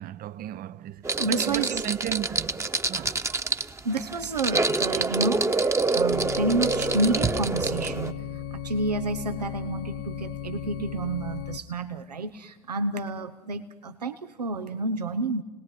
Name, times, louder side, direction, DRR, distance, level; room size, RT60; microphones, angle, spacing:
voice 1, 0.0-3.2 4.6-4.7, right 11 dB, 50° right, 0.8 m, -35 dB
sound 1, 1.0-8.1, right 3 dB, 15° right, 1.1 m, -26 dB
voice 2, 1.1-1.8 3.8-15.4, right 2 dB, 85° right, 0.9 m, -30 dB
sound 2, 6.1-11.6, left 10 dB, 55° left, 0.9 m, -36 dB
29.0 x 19.0 x 9.8 m
figure-of-eight pair, 60°, 20 cm